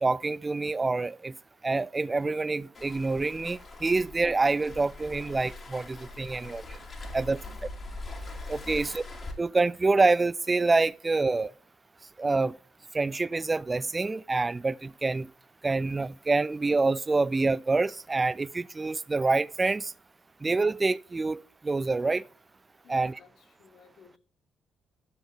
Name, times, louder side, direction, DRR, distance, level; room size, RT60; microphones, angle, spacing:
voice 1, 0.0-1.3 1.6-6.6 7.1-7.4 8.5-9.0 9.4-11.5 12.2-12.5 12.9-15.3 15.6-19.9 20.4-22.2 22.9-23.1, right 3 dB, 25° right, 0.3 m, -26 dB
Waves surf, 2.7-9.3, left 2 dB, 35° left, 2.3 m, -42 dB
voice 2, 7.3-7.8 8.2-8.3 8.7-9.0 22.8-24.2, left 6 dB, 60° left, 2.2 m, -57 dB
12.0 x 7.1 x 3.4 m
figure-of-eight pair, 45°, 0 cm